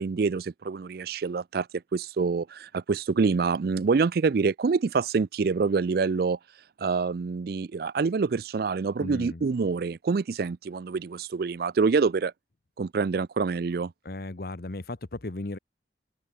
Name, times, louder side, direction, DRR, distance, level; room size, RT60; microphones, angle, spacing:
voice 1, 0.0-1.7 1.9-6.4 6.8-12.3 12.8-13.9, right 4 dB, 60° right, 0.4 m, -26 dB
voice 2, 9.0-9.4 14.0-15.6, left 2 dB, 55° left, 1.0 m, -36 dB
open air
head